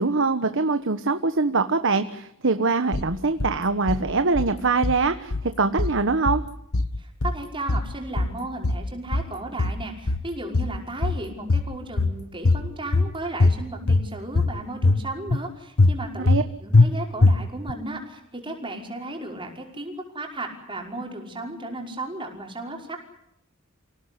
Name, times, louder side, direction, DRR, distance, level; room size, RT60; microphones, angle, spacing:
voice 1, 0.0-6.4 16.3-16.4, right 3 dB, 60° right, 9 dB, 1.3 m, -23 dB
sound 1, 2.9-3.5 3.9-4.5 4.8-5.5 5.8-6.5 6.7-7.4 7.7-8.4 8.6-9.3 9.6-10.3 10.5-11.2 11.5-12.2 12.5-13.1 13.4-14.1 14.4-15.0 15.3-15.4 15.8-16.4 16.7-16.9 17.2-17.7, left 3 dB, 85° left, 1.2 m, -21 dB
voice 2, 7.0-16.3 16.6-23.1, right 2 dB, 25° right, 2 dB, 5.5 m, -35 dB
28.0 x 17.5 x 10.0 m, 0.76 s
head